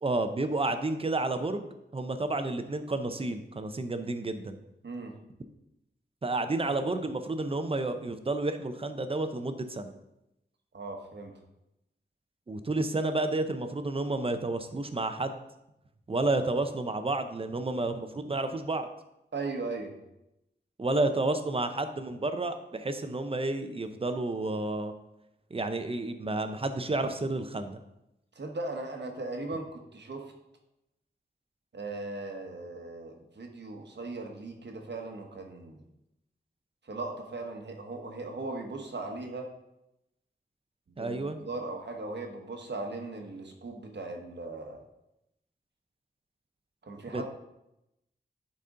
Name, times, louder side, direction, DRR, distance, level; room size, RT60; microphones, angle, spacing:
voice 1, 0.0-4.6 6.2-9.9 12.5-15.4 16.1-18.9 20.8-24.9 25.5-27.8 41.0-41.4 47.1-47.2, right 2 dB, 30° right, 8 dB, 0.6 m, -31 dB
voice 2, 4.8-5.2 10.7-11.3 19.3-19.9 28.3-30.3 31.7-35.8 36.9-39.5 41.0-44.8 46.8-47.2, right 3 dB, 70° right, 3 dB, 1.1 m, -38 dB
10.5 x 4.2 x 3.8 m, 0.88 s
wide cardioid pair, 100°, 19 cm